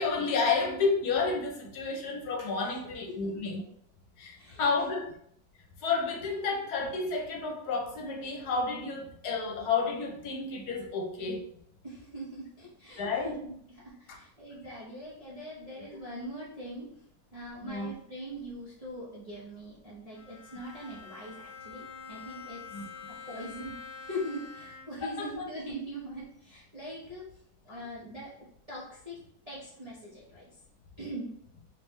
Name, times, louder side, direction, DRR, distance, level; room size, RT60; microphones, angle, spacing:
voice 1, 0.0-3.6 4.2-5.0 5.8-11.4 13.0-13.4 17.6-17.9 22.7-22.8 25.2-25.5 27.7-27.8, left 4 dB, 70° left, 1 dB, 1.1 m, -31 dB
voice 2, 4.3-5.0 11.8-16.9 17.3-22.6 23.3-27.4 27.6-28.3 28.7-29.2 29.5-30.5 31.0-31.3, equal, 35° right, -7 dB, 0.6 m, -42 dB
Bowed string instrument, 20.1-25.2, left 5 dB, 85° left, 0.6 m, -46 dB
3.4 x 3.1 x 3.1 m, 0.69 s
omnidirectional pair, 1.8 m